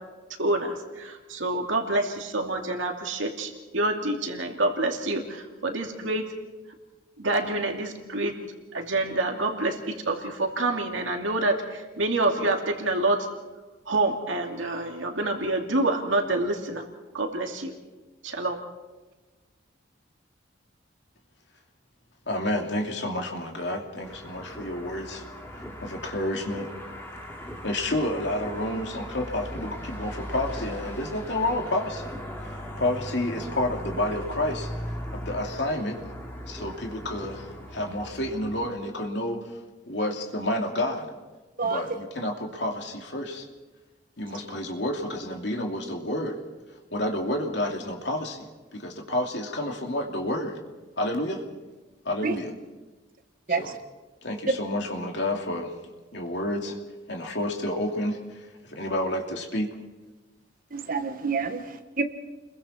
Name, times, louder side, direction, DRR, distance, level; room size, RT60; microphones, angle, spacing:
voice 1, 0.4-6.3 7.2-8.3 8.7-13.3 13.9-16.8 17.1-17.7 18.2-18.6, right 2 dB, 85° right, 3 dB, 2.4 m, -27 dB
voice 2, 22.3-25.2 25.8-26.7 27.6-32.1 32.4-34.7 35.1-36.0 36.5-39.4 39.9-41.1 41.6-43.5 44.2-46.4 46.9-48.5 48.7-50.6 51.0-51.4 52.0-52.5 53.6-53.7 54.2-55.7 56.1-56.8 57.1-58.2 58.7-59.7, left 1 dB, 65° left, 2 dB, 2.7 m, -29 dB
sound 1, 24.0-38.7, equal, 10° left, 2.7 m, -38 dB
voice 3, 60.7-62.0, right 4 dB, 45° right, 7 dB, 1.4 m, -28 dB
30.0 x 22.0 x 4.3 m, 1.2 s
head